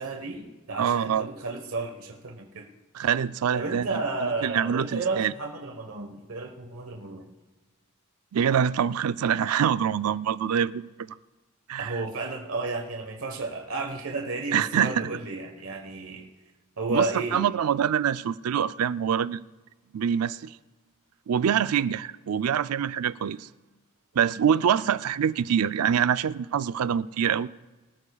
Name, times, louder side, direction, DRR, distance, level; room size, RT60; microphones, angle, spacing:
voice 1, 0.0-2.7 3.0-3.1 3.5-7.3 11.8-16.3 16.8-17.4, right 3 dB, 70° right, 1.2 m, -32 dB
voice 2, 0.8-1.3 2.9-4.0 4.4-5.3 8.3-11.1 11.7-12.0 14.5-15.1 16.9-17.1 17.3-19.4 19.9-20.5 21.3-23.5 24.2-27.5, right 8 dB, 85° right, 0.4 m, -25 dB
24.0 x 13.0 x 2.3 m
head